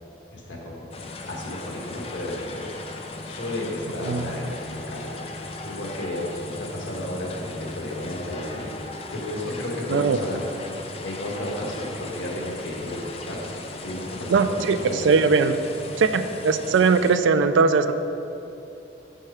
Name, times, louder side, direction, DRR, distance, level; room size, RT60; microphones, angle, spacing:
voice 1, 0.3-5.3 5.6-8.8 9.1-13.4 13.8-15.1, left 1 dB, 90° left, -2 dB, 1.3 m, -33 dB
sound 1, 0.9-17.2, left 2 dB, 30° left, 0.4 m, -37 dB
voice 2, 14.3-14.8 15.0-15.6 16.0-17.9, right 4 dB, 85° right, 10 dB, 0.3 m, -20 dB
6.4 x 4.5 x 4.8 m, 2.8 s
head